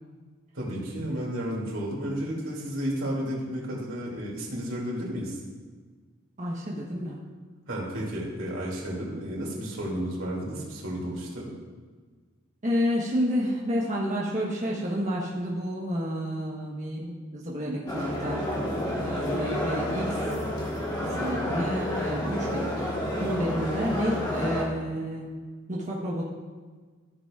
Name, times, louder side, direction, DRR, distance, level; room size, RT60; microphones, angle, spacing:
voice 1, 0.5-5.4 7.7-11.5, equal, 85° right, -4 dB, 2.7 m, -32 dB
voice 2, 6.4-7.2 12.6-20.2 21.0-22.7 23.2-25.3 25.7-26.2, equal, 40° right, -4 dB, 1.2 m, -30 dB
sound 1, 17.9-24.7, equal, 20° left, 1.5 m, -30 dB
14.0 x 6.9 x 2.5 m, 1.4 s
head